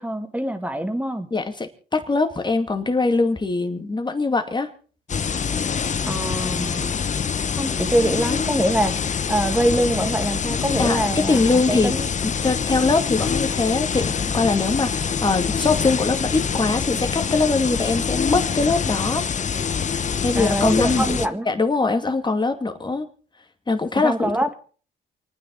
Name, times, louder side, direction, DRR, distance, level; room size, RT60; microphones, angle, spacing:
voice 1, 0.0-1.3 6.1-6.9 7.6-12.1 20.4-21.5 24.0-24.5, right 1 dB, 5° right, 7 dB, 2.1 m, -24 dB
voice 2, 1.3-4.7 10.8-11.9 12.2-19.2 20.2-21.2 21.5-23.1 23.7-24.3, left 3 dB, 20° left, 7 dB, 2.3 m, -22 dB
sound 1, 5.1-21.3, left 6 dB, 35° left, 0.8 m, -25 dB
28.5 x 9.6 x 3.9 m, 0.40 s
cardioid pair, 90°, 20 cm